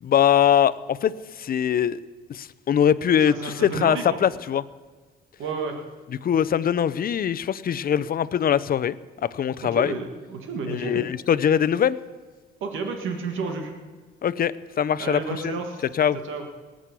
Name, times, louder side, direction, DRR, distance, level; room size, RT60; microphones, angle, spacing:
voice 1, 0.0-2.0 2.3-4.6 6.2-9.0 9.2-9.9 10.7-12.0 14.2-15.6 15.9-16.2, left 9 dB, 50° left, 17 dB, 0.6 m, -22 dB
voice 2, 3.3-4.2 5.4-5.8 9.6-11.0 12.6-13.7 15.0-15.8 16.2-16.4, right 4 dB, 80° right, 4 dB, 1.9 m, -31 dB
19.0 x 6.3 x 8.3 m, 1.4 s
cardioid pair, 90°, 20 cm